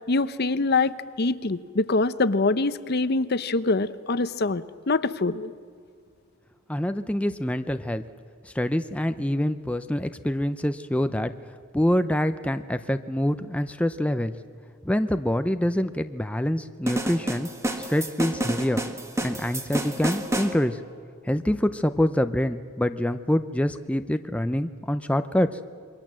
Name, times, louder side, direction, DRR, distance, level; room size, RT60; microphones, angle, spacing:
voice 1, 0.1-5.5, left 3 dB, 50° left, 14 dB, 0.8 m, -24 dB
voice 2, 6.7-8.0 8.4-11.3 11.7-14.3 14.8-17.5 17.8-18.8 19.2-20.8 21.2-25.5, left 1 dB, 5° left, 9 dB, 0.6 m, -25 dB
sound 1, 16.9-20.5, right 1 dB, 15° right, 1.6 m, -29 dB
27.5 x 23.0 x 7.5 m, 2.2 s
head